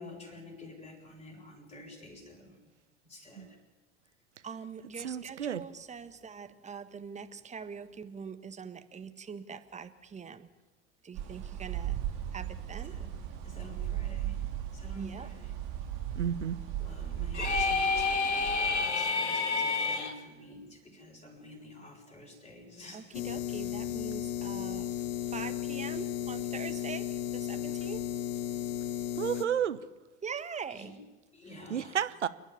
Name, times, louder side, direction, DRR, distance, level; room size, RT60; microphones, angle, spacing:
voice 1, 0.0-2.6 3.0-3.6 12.8-14.4 14.7-15.5 16.8-23.2 30.7-31.0 31.3-32.0, left 1 dB, 15° left, -4 dB, 7.0 m, -49 dB
voice 2, 4.4-10.5 11.0-12.0 12.3-12.9 15.0-15.3 22.9-24.9 25.3-27.1 27.3-28.0 30.2-30.9, right 6 dB, 20° right, 10 dB, 1.5 m, -43 dB
voice 3, 5.0-5.6 16.2-16.6 29.2-29.8 31.7-32.3, right 9 dB, 80° right, 13 dB, 0.9 m, -31 dB
sound 1, 11.1-18.9, right 11 dB, 55° right, 3.6 m, -37 dB
sound 2, 17.3-20.1, left 4 dB, 80° left, 1.9 m, -29 dB
sound 3, 23.1-29.4, left 11 dB, 55° left, 1.3 m, -34 dB
28.5 x 10.0 x 9.9 m, 1.2 s
figure-of-eight pair, 75°, 34 cm